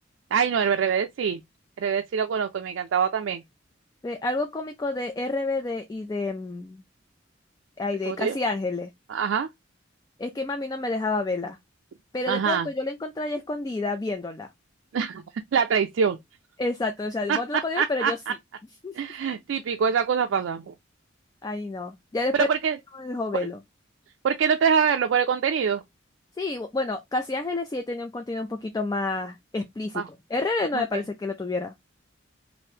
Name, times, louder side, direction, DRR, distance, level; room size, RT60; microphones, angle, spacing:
voice 1, 0.3-1.4 1.8-3.4 8.1-8.4 9.1-9.5 12.3-12.7 14.9-15.2 15.5-16.2 17.3-18.1 18.9-20.7 22.3-22.8 24.2-25.8 29.9-30.1 30.7-31.0, right 7 dB, 80° right, 0.3 m, -24 dB
voice 2, 4.0-6.8 7.8-8.9 10.2-11.6 12.1-14.5 16.6-18.2 18.8-19.0 21.4-22.5 22.9-23.6 26.4-31.7, left 2 dB, 20° left, 0.3 m, -29 dB
2.8 x 2.6 x 3.1 m
head